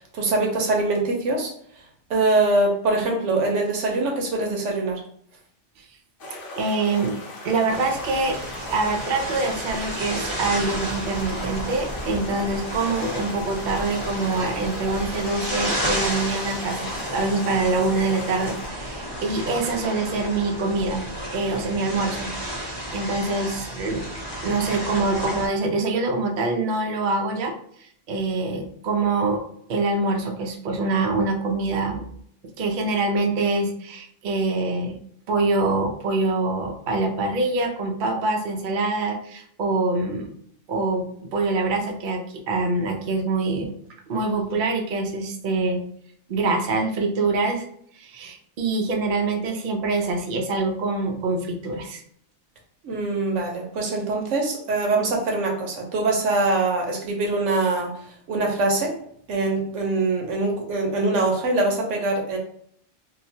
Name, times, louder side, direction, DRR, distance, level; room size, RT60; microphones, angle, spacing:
voice 1, 0.0-1.5 2.1-5.0 12.1-12.3 52.8-57.9 58.3-58.9 59.3-62.4, right 2 dB, 80° right, 1 dB, 1.0 m, -23 dB
sound 1, 6.2-18.7, left 2 dB, 55° left, 0.8 m, -39 dB
voice 2, 6.6-7.2 7.4-8.4 8.7-16.8 17.1-21.0 21.3-22.3 22.9-24.1 24.4-27.5 27.8-29.4 29.7-32.0 32.6-35.0 35.3-40.3 40.7-41.1 41.3-43.7 44.1-45.8 46.3-47.7 48.0-52.0, right 3 dB, 60° right, 2 dB, 0.5 m, -25 dB
sound 2, 7.7-25.5, equal, 25° left, 0.7 m, -32 dB
2.8 x 2.0 x 2.7 m, 0.65 s
omnidirectional pair, 1.2 m